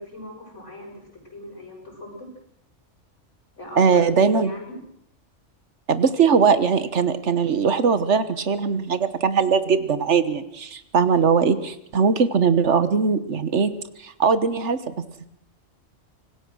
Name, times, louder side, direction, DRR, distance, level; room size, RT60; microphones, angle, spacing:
voice 1, 0.0-2.3 3.6-4.8, left 1 dB, 75° left, 1 dB, 6.6 m, -40 dB
voice 2, 3.7-4.5 5.9-13.7 14.0-14.8, right 6 dB, 70° right, 12 dB, 1.5 m, -20 dB
25.5 x 19.0 x 6.3 m, 0.75 s
omnidirectional pair, 1.2 m